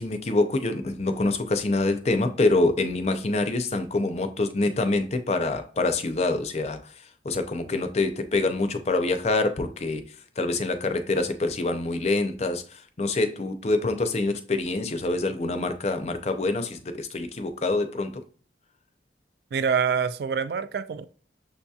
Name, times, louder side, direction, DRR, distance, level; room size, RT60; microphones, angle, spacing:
voice 1, 0.0-10.0 10.4-18.2, left 2 dB, 35° left, 0.5 m, -26 dB
voice 2, 19.5-21.1, right 6 dB, 60° right, 0.3 m, -26 dB
6.8 x 2.7 x 2.3 m
head